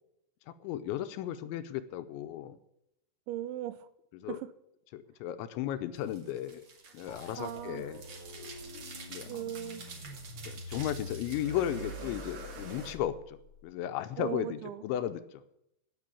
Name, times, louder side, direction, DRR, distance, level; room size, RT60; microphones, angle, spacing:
voice 1, 0.5-2.6 4.2-4.4 4.9-6.6 6.9-8.0 9.1-9.3 10.4-13.4 13.6-15.2, left 11 dB, 80° left, 10 dB, 2.9 m, -35 dB
voice 2, 3.3-3.9 4.3-4.5 7.4-7.9 9.3-9.9 14.2-14.9, right 12 dB, 80° right, 13 dB, 2.8 m, -38 dB
sound 1, 5.9-12.9, right 3 dB, 50° right, 1.6 m, -47 dB
sound 2, 7.1-13.7, left 2 dB, 45° left, 1.9 m, -46 dB
17.0 x 7.0 x 8.3 m, 0.80 s
omnidirectional pair, 5.6 m